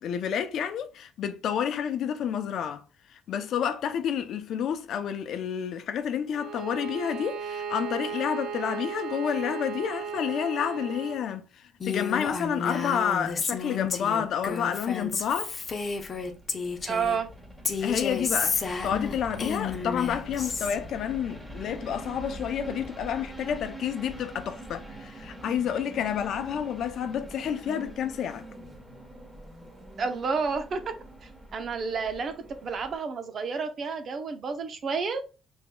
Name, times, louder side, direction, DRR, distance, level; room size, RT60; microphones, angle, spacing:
voice 1, 0.0-2.8 3.3-11.4 11.8-15.5 17.8-28.5, left 8 dB, 75° left, 0.5 m, -29 dB
Bowed string instrument, 6.3-11.3, right 6 dB, 85° right, 0.4 m, -36 dB
Female speech woman speaking, 11.8-17.2 17.6-20.8, left 4 dB, 40° left, 0.8 m, -31 dB
sound 1, 15.4-33.0, right 1 dB, 15° right, 1.2 m, -44 dB
voice 2, 16.9-17.3 30.0-30.9 31.2-32.3 32.6-35.2, right 5 dB, 55° right, 0.8 m, -30 dB
5.2 x 3.5 x 2.3 m
cardioid pair, 90°, 0 cm